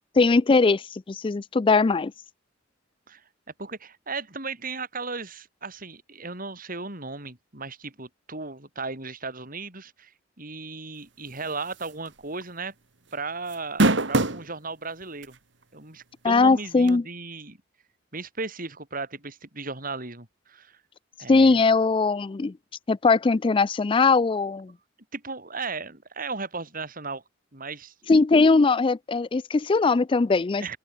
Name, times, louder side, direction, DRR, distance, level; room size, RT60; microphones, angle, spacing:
voice 1, 0.2-2.1 16.2-17.0 21.3-22.5 22.9-24.7 28.1-30.7, left 4 dB, 25° left, 0.4 m, -20 dB
voice 2, 3.6-10.1 10.4-12.7 13.1-15.4 15.7-17.6 18.1-20.8 21.2-21.5 25.1-27.2 27.5-27.9 30.6-30.8, right 3 dB, 45° right, 5.4 m, -36 dB
sound 1, 11.8-12.1 12.4-12.5 13.5-14.5 15.2-15.3 16.9-17.0, right 2 dB, 65° right, 2.1 m, -21 dB
open air
head